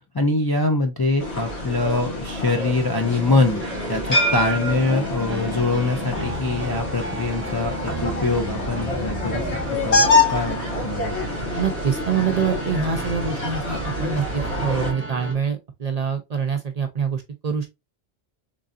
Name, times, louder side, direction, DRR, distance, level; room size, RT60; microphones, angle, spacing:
voice 1, 0.1-11.5, left 3 dB, 35° left, 0.3 m, -24 dB
sound 1, 1.2-14.9, left 2 dB, 80° left, 1.8 m, -26 dB
sound 2, 2.9-15.3, right 2 dB, 10° right, 0.9 m, -34 dB
voice 2, 11.5-17.7, right 6 dB, 50° right, 0.5 m, -25 dB
3.8 x 3.4 x 2.4 m
omnidirectional pair, 1.1 m